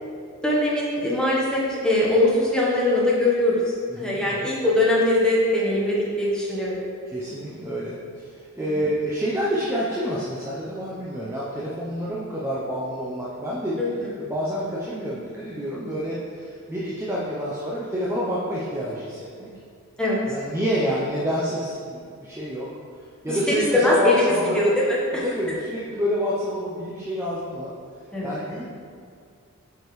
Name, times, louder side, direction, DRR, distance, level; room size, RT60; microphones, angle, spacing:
voice 1, 0.4-3.6 4.0-6.8 13.8-13.9 20.0-20.2 23.5-25.2 28.1-28.3, left 1 dB, 5° left, -6 dB, 1.2 m, -21 dB
voice 2, 3.9-4.5 7.1-19.5 20.3-22.7 23.2-24.7 25.2-27.7 28.2-28.6, equal, 10° right, -7 dB, 0.7 m, -28 dB
8.2 x 5.0 x 3.2 m, 2.3 s
head